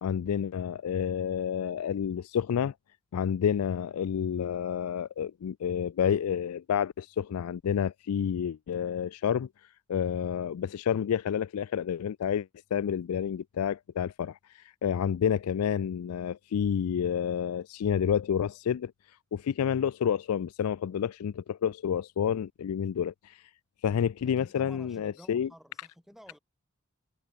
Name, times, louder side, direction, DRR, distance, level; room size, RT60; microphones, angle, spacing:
voice 1, 0.0-2.7 3.1-9.5 9.9-18.9 19.3-23.4 23.8-25.5, left 8 dB, 85° left, 0.4 m, -29 dB
voice 2, 24.2-26.4, equal, ahead, 6.0 m, -52 dB
head